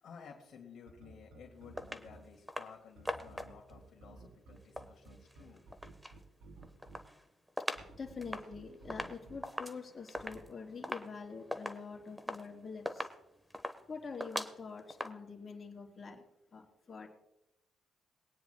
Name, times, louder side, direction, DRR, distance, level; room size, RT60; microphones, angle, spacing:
voice 1, 0.0-5.6 6.4-6.6, left 6 dB, 65° left, 0 dB, 2.2 m, -55 dB
sound 1, 0.9-2.2 3.0-7.0 7.8-9.4 10.2-10.4, right 2 dB, 75° right, 3.0 m, -54 dB
sound 2, 1.8-2.1 2.5-2.7 3.1-3.7 4.6-6.2 6.6-7.9 8.2-15.1, equal, ahead, 1.1 m, -42 dB
voice 2, 8.0-13.1 13.9-16.2 16.5-17.1, left 5 dB, 35° left, -1 dB, 3.5 m, -46 dB
22.5 x 9.6 x 2.2 m, 0.88 s
cardioid pair, 90°, 0 cm